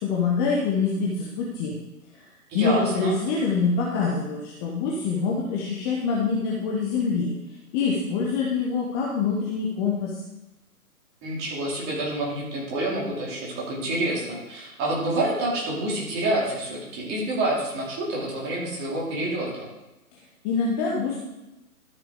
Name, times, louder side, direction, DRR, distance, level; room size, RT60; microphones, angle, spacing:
voice 1, 0.0-1.7 2.5-7.3 7.7-10.1 20.4-21.2, left 5 dB, 15° left, -3 dB, 0.7 m, -25 dB
voice 2, 2.5-3.2 11.2-19.7, right 1 dB, 20° right, -4 dB, 2.8 m, -28 dB
12.5 x 6.8 x 3.6 m, 0.99 s
figure-of-eight pair, 130°, 45 cm